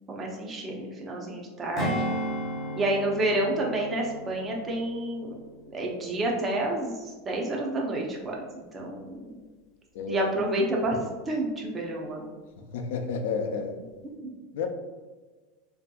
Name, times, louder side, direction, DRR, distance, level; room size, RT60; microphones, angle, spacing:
voice 1, 0.1-2.0 2.8-5.4 5.7-9.3 10.1-11.0 11.3-12.2 14.2-14.4, right 1 dB, 15° right, -1 dB, 0.5 m, -29 dB
Strum, 1.8-6.5 6.8-7.1, equal, 25° left, 0.7 m, -35 dB
voice 2, 9.9-10.3 12.6-13.8 14.5-14.7, left 5 dB, 70° left, 4 dB, 0.4 m, -31 dB
3.4 x 2.6 x 2.2 m, 1.3 s
supercardioid pair, 165°, 0 cm